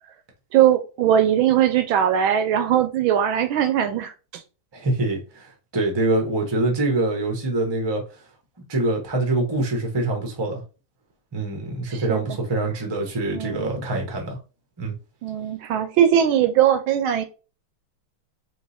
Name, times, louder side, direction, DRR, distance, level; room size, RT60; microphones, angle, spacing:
voice 1, 0.5-4.4 11.9-12.4 13.3-13.7 15.2-17.2, right 10 dB, 75° right, 1.4 m, -20 dB
voice 2, 4.7-8.0 8.7-10.6 11.3-14.4 14.8-14.9, right 2 dB, 20° right, 0.7 m, -24 dB
3.8 x 2.8 x 4.1 m
omnidirectional pair, 2.3 m